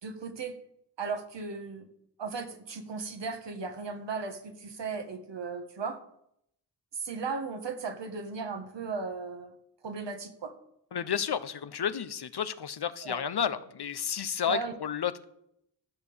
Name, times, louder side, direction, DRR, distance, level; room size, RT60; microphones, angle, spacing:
voice 1, 0.0-0.5 1.0-1.9 2.2-6.0 6.9-9.5 9.8-10.5 13.0-13.2 14.5-14.7, right 4 dB, 70° right, 6 dB, 1.9 m, -36 dB
voice 2, 10.9-15.2, left 8 dB, 60° left, 12 dB, 1.0 m, -31 dB
13.0 x 6.9 x 6.5 m, 0.75 s
supercardioid pair, 40°, 44 cm